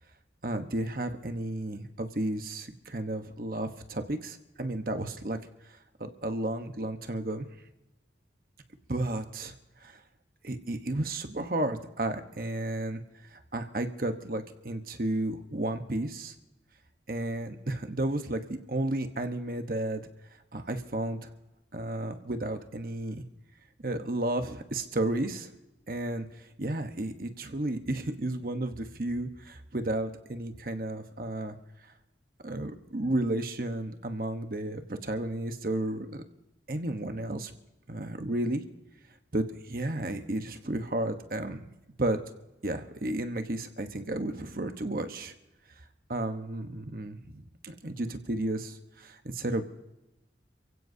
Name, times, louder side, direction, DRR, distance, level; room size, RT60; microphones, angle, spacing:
voice 1, 0.4-5.4 6.0-7.5 8.9-9.5 9.8-10.0 10.4-13.0 13.3-16.3 17.1-20.0 20.5-21.3 21.7-23.2 23.8-25.5 25.9-26.3 26.6-31.5 32.4-36.2 36.7-37.5 37.9-38.6 39.3-41.6 42.0-42.2 42.6-45.3 46.1-49.6, right 1 dB, 50° right, 7 dB, 1.1 m, -32 dB
28.5 x 16.0 x 2.8 m, 0.97 s
head